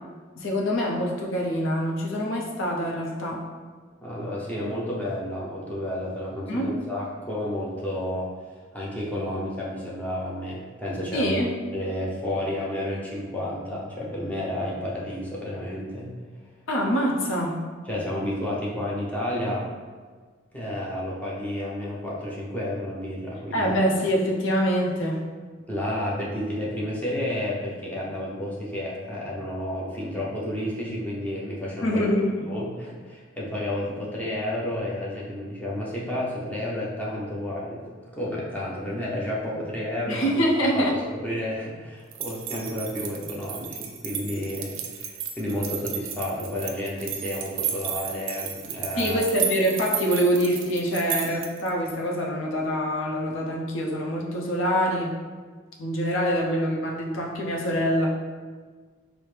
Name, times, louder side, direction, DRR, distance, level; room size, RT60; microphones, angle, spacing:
voice 1, 0.4-3.5 6.5-6.7 11.1-11.6 16.7-17.6 23.5-25.2 31.8-32.5 40.1-41.0 49.0-55.2 55.8-58.1, equal, 65° left, -1 dB, 0.6 m, -25 dB
voice 2, 4.0-8.3 8.7-11.4 11.7-16.1 17.9-19.7 20.5-23.7 25.7-32.1 32.4-40.3 40.7-49.3, left 1 dB, 5° left, -6 dB, 0.6 m, -31 dB
sound 1, 42.1-51.7, right 8 dB, 60° right, 0.4 m, -33 dB
4.6 x 2.0 x 3.2 m, 1.5 s
head